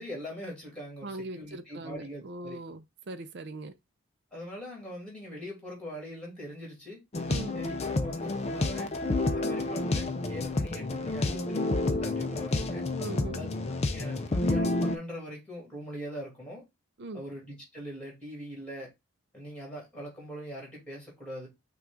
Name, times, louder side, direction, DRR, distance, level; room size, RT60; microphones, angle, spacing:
voice 1, 0.0-2.6 4.3-7.0 7.5-8.9 9.3-12.9 13.4-13.5 13.8-16.6 17.1-18.9 19.3-21.5, equal, 5° left, 2.3 m, -42 dB
voice 2, 1.0-3.8 7.3-7.6 13.0-13.5 17.0-17.2, right 2 dB, 50° right, 0.5 m, -40 dB
sound 1, 7.1-15.0, left 2 dB, 30° left, 0.4 m, -29 dB
5.8 x 2.4 x 3.7 m
head